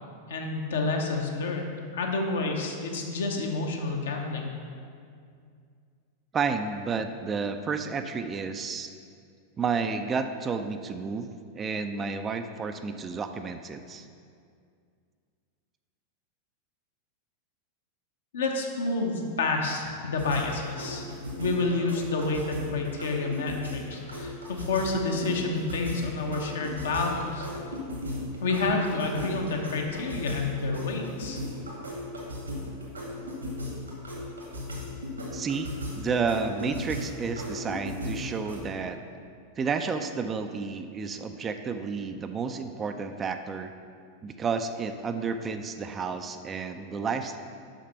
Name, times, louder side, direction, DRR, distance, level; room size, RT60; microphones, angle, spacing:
voice 1, 0.3-4.5 18.3-21.0 21.4-27.5 28.4-31.4, left 3 dB, 65° left, 1 dB, 1.0 m, -29 dB
voice 2, 6.3-8.9 9.6-11.3 11.5-14.1 35.3-35.7 36.0-39.0 39.6-43.7 44.2-47.4, right 5 dB, 20° right, 7 dB, 0.4 m, -31 dB
sound 1, 20.2-38.6, left 1 dB, 80° right, 1.7 m, -37 dB
6.3 x 5.8 x 5.6 m, 2.2 s
figure-of-eight pair, 90°, 0 cm